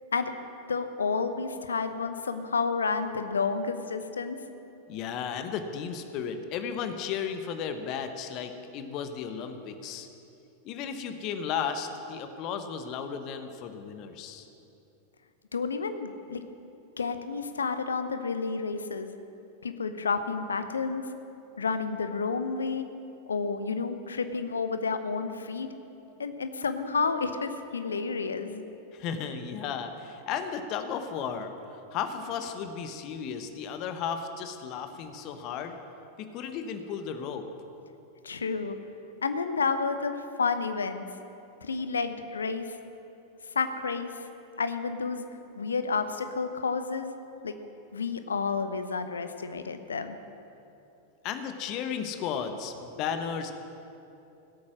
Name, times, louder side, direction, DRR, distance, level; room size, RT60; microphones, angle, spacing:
voice 1, 0.7-4.4 15.5-16.4 17.0-19.2 19.6-21.0 21.6-22.9 23.3-25.7 26.2-28.6 38.2-38.8 39.2-41.0 41.6-42.8 43.5-44.2 44.6-45.2 45.6-47.1 47.4-47.5 47.9-50.2, left 4 dB, 70° left, 9 dB, 0.8 m, -30 dB
voice 2, 4.9-10.1 10.6-14.5 28.9-35.8 36.2-37.5 51.2-53.5, left 7 dB, 40° left, 8 dB, 1.0 m, -34 dB
17.0 x 8.5 x 6.2 m, 2.8 s
figure-of-eight pair, 90°, 0 cm